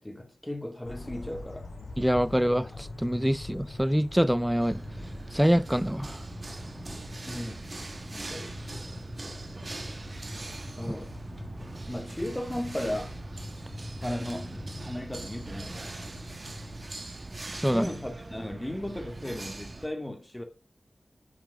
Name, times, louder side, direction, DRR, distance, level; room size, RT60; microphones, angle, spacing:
voice 1, 0.0-1.7 7.3-7.8 8.1-8.6 10.8-11.2 11.9-13.2 14.0-16.0 17.6-20.4, left 1 dB, 15° left, 2.4 m, -36 dB
sound 1, 0.8-16.9, left 2 dB, 80° left, 4.6 m, -44 dB
voice 2, 2.0-4.8 5.3-6.2 17.5-17.9, equal, 5° right, 0.5 m, -25 dB
sound 2, 4.6-19.9, right 2 dB, 40° right, 1.4 m, -41 dB
11.5 x 5.9 x 5.1 m
wide cardioid pair, 85°, 0 cm